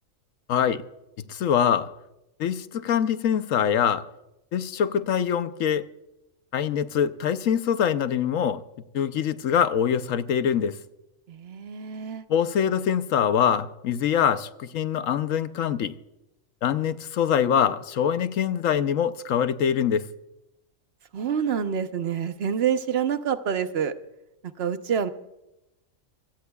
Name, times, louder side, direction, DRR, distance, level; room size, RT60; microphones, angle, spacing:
voice 1, 0.5-0.8 1.2-1.9 2.4-4.1 4.5-5.9 6.5-8.6 8.9-10.8 12.3-15.9 16.6-20.1, left 8 dB, 80° left, 1.1 m, -24 dB
voice 2, 11.3-12.2 21.1-23.9 24.6-25.1, right 7 dB, 55° right, 1.1 m, -27 dB
25.5 x 16.5 x 2.3 m
omnidirectional pair, 1.4 m